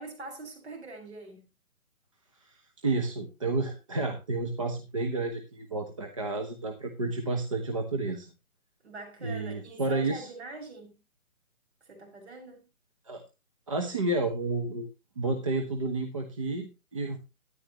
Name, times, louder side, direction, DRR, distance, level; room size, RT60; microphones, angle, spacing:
voice 1, 0.0-1.5 8.8-11.0 11.8-12.7, right 3 dB, 50° right, 6.6 m, -44 dB
voice 2, 2.4-8.3 9.2-10.3 13.1-13.2 13.7-14.9 15.2-17.2, right 2 dB, 20° right, 1.0 m, -31 dB
13.0 x 11.0 x 3.1 m
hypercardioid pair, 170°, 43 cm